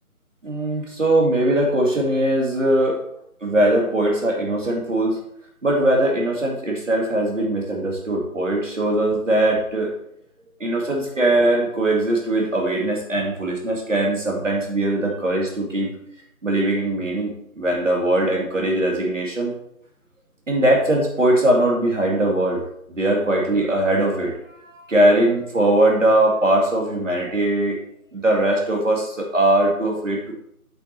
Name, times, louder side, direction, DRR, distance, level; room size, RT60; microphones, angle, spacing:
voice 1, 0.4-3.0 3.4-5.2 5.6-10.0 10.6-15.9 16.4-19.5 20.5-22.6 22.9-27.8 28.1-30.3, right 1 dB, 55° right, 0 dB, 2.2 m, -20 dB
7.8 x 7.8 x 3.3 m, 0.74 s
figure-of-eight pair, 165°, 44 cm